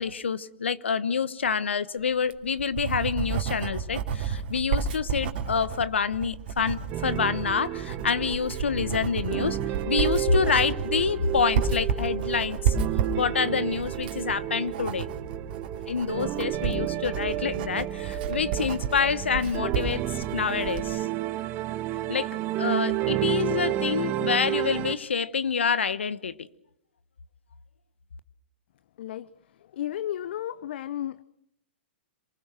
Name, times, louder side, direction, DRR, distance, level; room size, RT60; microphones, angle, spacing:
voice 1, 0.0-9.6 9.9-12.7 13.2-15.1 15.9-20.0 20.3-21.1 22.1-22.3 22.6-26.5, left 6 dB, 85° left, 15 dB, 1.2 m, -27 dB
Writing, 2.1-20.9, right 6 dB, 55° right, 2.9 m, -32 dB
sound 1, 6.9-24.9, right 13 dB, 35° right, 1.3 m, -31 dB
voice 2, 29.0-29.3 29.6-31.2, left 11 dB, 65° left, 16 dB, 0.8 m, -33 dB
27.0 x 20.0 x 6.3 m, 0.78 s
hypercardioid pair, 120°, 6 cm